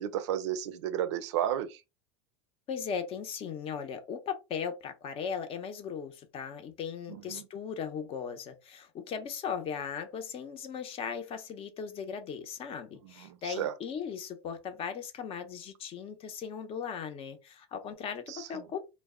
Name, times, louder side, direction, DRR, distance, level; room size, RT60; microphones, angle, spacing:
voice 1, 0.0-1.8 7.3-7.4 13.0-13.7 18.3-18.7, right 10 dB, 80° right, 0.5 m, -33 dB
voice 2, 2.7-18.8, left 7 dB, 40° left, 0.6 m, -38 dB
2.1 x 2.0 x 3.5 m
supercardioid pair, 115°, 15 cm